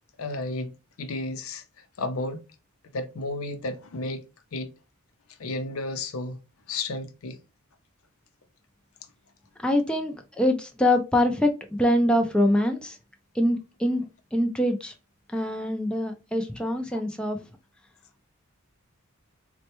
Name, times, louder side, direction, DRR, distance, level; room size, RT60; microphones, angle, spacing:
voice 1, 0.2-1.6 2.0-2.4 2.9-4.2 4.5-4.7 5.4-6.4 6.7-7.4 16.9-17.0, left 2 dB, 90° left, 0.6 m, -32 dB
voice 2, 9.6-13.0 13.3-14.9 15.3-17.4, left 1 dB, 5° left, 0.4 m, -24 dB
4.1 x 2.2 x 2.9 m
head